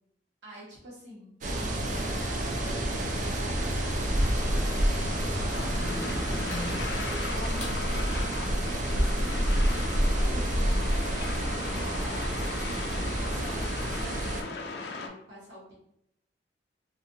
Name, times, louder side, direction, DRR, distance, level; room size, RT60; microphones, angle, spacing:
voice 1, 0.4-3.9 4.2-6.5 6.8-8.7 8.9-12.5 13.2-15.7, equal, 85° right, -6 dB, 1.1 m, -47 dB
sound 1, 1.4-14.4, right 1 dB, 45° right, 0.4 m, -29 dB
sound 2, 1.5-7.8, left 1 dB, 40° left, 0.8 m, -39 dB
sound 3, 1.8-15.1, left 3 dB, 65° left, 0.3 m, -38 dB
2.6 x 2.4 x 2.7 m, 0.77 s
head